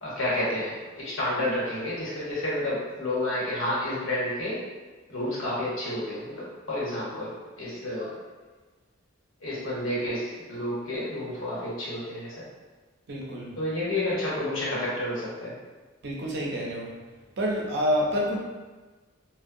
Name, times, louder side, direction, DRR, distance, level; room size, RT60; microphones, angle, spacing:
voice 1, 0.0-4.6 5.1-6.3 6.7-8.1 9.4-12.5 13.6-15.6, left 1 dB, 80° left, -7 dB, 1.0 m, -30 dB
voice 2, 13.1-13.6 16.0-16.9 17.4-18.4, equal, 55° right, -2 dB, 0.5 m, -28 dB
2.6 x 2.1 x 2.6 m, 1.3 s
head